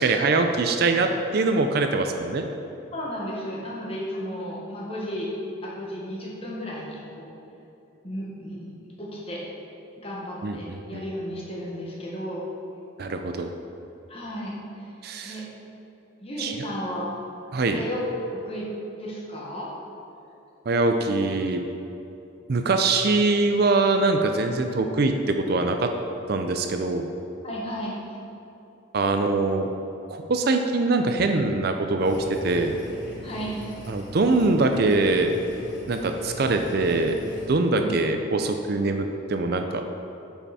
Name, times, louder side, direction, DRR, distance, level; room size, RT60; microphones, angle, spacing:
voice 1, 0.0-2.4 10.4-11.0 13.0-13.5 15.0-15.4 16.4-16.5 17.5-17.8 20.7-21.6 22.5-25.9 26.3-27.0 28.9-29.7 30.1-32.2 32.4-32.7 33.9-35.3 35.9-37.2 37.5-39.8, right 3 dB, 50° right, 6 dB, 0.5 m, -23 dB
voice 2, 2.9-5.3 5.6-7.3 8.0-9.4 10.0-12.4 14.1-14.9 15.2-15.4 16.2-17.2 17.7-18.0 18.3-18.7 19.0-19.7 27.4-28.0 33.2-33.7 37.8-37.9, equal, 30° left, -4 dB, 1.4 m, -34 dB
sound 1, 32.0-37.5, equal, 55° left, 1.7 m, -40 dB
8.6 x 5.7 x 4.2 m, 2.9 s
head